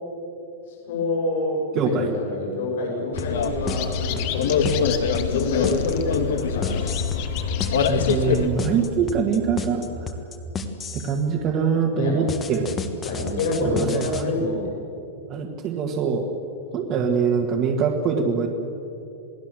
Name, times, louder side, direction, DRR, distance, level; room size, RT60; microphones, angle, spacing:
voice 1, 0.7-1.6 1.9-4.9 5.2-6.8 12.0-12.1 13.0-14.7, left 2 dB, 65° left, -1 dB, 7.1 m, -27 dB
voice 2, 1.8-2.1 7.9-10.1 10.9-12.7 13.6-14.3 15.3-16.2 16.7-18.5, right 5 dB, 25° right, -1 dB, 1.8 m, -23 dB
sound 1, 3.1-8.5, left 7 dB, 90° left, 2.0 m, -24 dB
sound 2, 3.2-11.2 12.3-14.2, left 4 dB, 15° left, 1.4 m, -31 dB
sound 3, 3.7-8.9, left 10 dB, 40° left, 1.9 m, -36 dB
28.0 x 19.0 x 7.8 m, 2.8 s
supercardioid pair, 175°, 0 cm